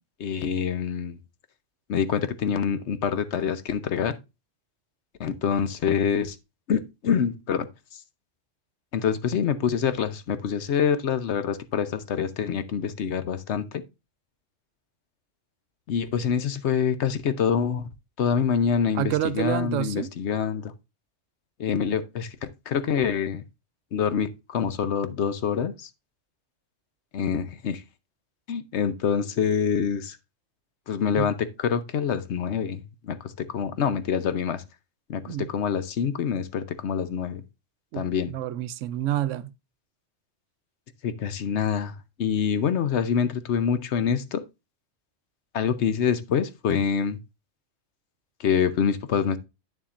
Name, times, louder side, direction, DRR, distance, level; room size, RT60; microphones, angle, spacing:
voice 1, 0.2-1.2 1.9-4.2 5.2-6.4 6.7-7.7 8.9-13.8 15.9-17.9 18.2-20.7 21.6-23.4 23.9-25.9 27.1-27.8 28.5-30.2 30.9-34.6 35.1-37.4 37.9-38.3 41.0-44.4 45.5-47.2 48.4-49.4, left 7 dB, 70° left, 1.0 m, -26 dB
voice 2, 18.9-20.1 31.2-31.3 35.3-35.5 37.9-39.5, right 12 dB, 85° right, 0.9 m, -28 dB
8.5 x 7.1 x 2.4 m
omnidirectional pair, 1.3 m